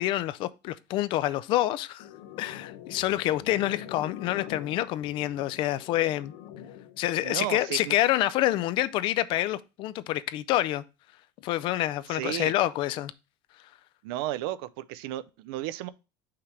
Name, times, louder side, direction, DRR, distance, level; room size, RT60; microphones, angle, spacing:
voice 1, 0.0-2.1 2.4-6.3 7.0-10.8 11.4-13.1, left 14 dB, 45° left, 0.4 m, -27 dB
sound 1, 2.0-7.0, left 10 dB, 90° left, 0.8 m, -44 dB
voice 2, 7.2-8.0 12.1-12.5 14.0-15.9, right 14 dB, 80° right, 0.5 m, -33 dB
5.7 x 3.3 x 5.0 m
cardioid pair, 160°, 12 cm